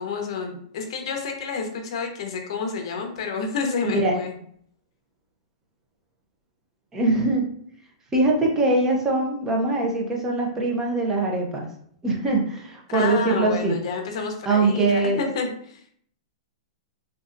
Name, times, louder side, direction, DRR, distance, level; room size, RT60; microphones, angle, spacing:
voice 1, 0.0-4.3 12.9-15.8, left 5 dB, 60° left, 4 dB, 0.7 m, -29 dB
voice 2, 6.9-7.5 8.1-11.7 12.0-13.8 14.5-15.2, right 2 dB, 15° right, -1 dB, 0.6 m, -22 dB
3.2 x 2.7 x 2.5 m, 0.64 s
supercardioid pair, 155°, 3 cm